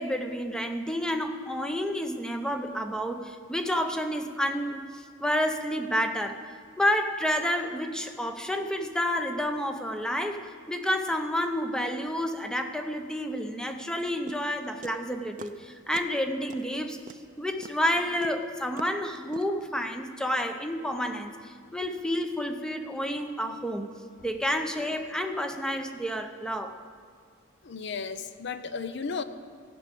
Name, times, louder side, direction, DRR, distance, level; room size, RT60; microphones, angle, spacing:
voice 1, 0.0-6.4 6.8-17.0 17.4-23.9 24.2-26.8, equal, 5° left, 6 dB, 0.7 m, -30 dB
sound 1, 14.3-15.6 15.9-16.2 16.5-19.6, right 4 dB, 40° right, 0.5 m, -44 dB
voice 2, 27.6-29.2, left 5 dB, 60° left, 11 dB, 0.6 m, -34 dB
14.5 x 6.2 x 8.5 m, 2.1 s
head